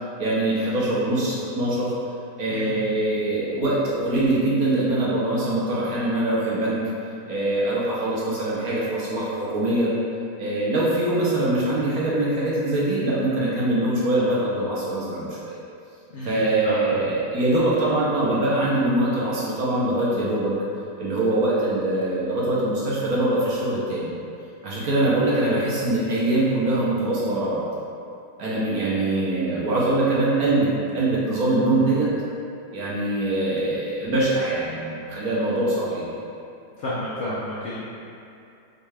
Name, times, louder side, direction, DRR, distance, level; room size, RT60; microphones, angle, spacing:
voice 1, 0.2-1.9 2.4-6.8 7.3-9.9 10.4-15.6 16.2-20.5 21.0-24.1 24.6-27.6 28.4-32.1 32.7-36.1, right 2 dB, 60° right, -7 dB, 1.1 m, -23 dB
voice 2, 2.5-2.9 16.1-16.9 36.8-37.8, left 1 dB, 70° left, -8 dB, 0.6 m, -31 dB
6.3 x 2.4 x 3.3 m, 2.6 s
omnidirectional pair, 2.0 m